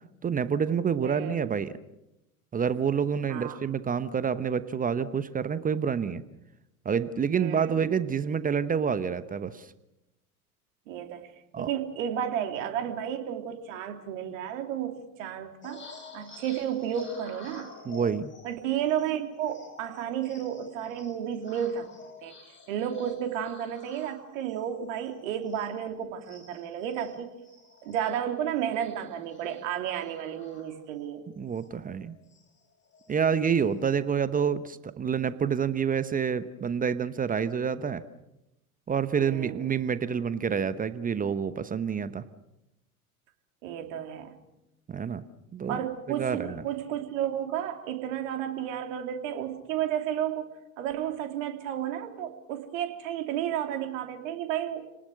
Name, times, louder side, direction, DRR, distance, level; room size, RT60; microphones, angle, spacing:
voice 1, 0.2-1.7 2.5-6.2 6.8-9.7 11.5-11.7 17.8-18.3 31.4-32.1 33.1-38.0 38.9-42.2 44.9-45.2 45.5-45.8 46.1-46.6, right 7 dB, 20° right, 14 dB, 1.0 m, -28 dB
voice 2, 1.0-1.5 3.3-3.6 7.3-7.8 10.9-11.3 11.6-15.9 16.1-17.7 18.4-21.9 22.2-22.3 22.7-27.3 27.8-31.2 39.1-39.6 43.6-44.4 45.7-50.5 50.8-54.9, right 10 dB, 60° right, 5 dB, 3.2 m, -32 dB
sound 1, 15.6-25.9 26.2-31.1 31.5-31.7 32.0-33.1 33.5-34.0, left 4 dB, 25° left, 6.6 m, -50 dB
30.0 x 19.0 x 6.5 m, 0.91 s
figure-of-eight pair, 80°, 44 cm